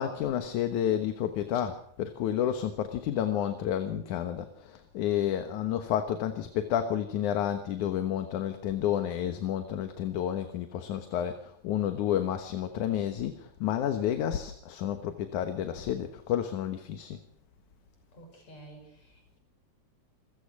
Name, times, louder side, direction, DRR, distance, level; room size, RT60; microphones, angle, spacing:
voice 1, 0.0-17.2, left 10 dB, 80° left, 8 dB, 2.7 m, -30 dB
voice 2, 18.1-19.4, right 1 dB, 60° left, 4 dB, 7.2 m, -51 dB
27.5 x 15.5 x 6.3 m, 0.71 s
omnidirectional pair, 3.4 m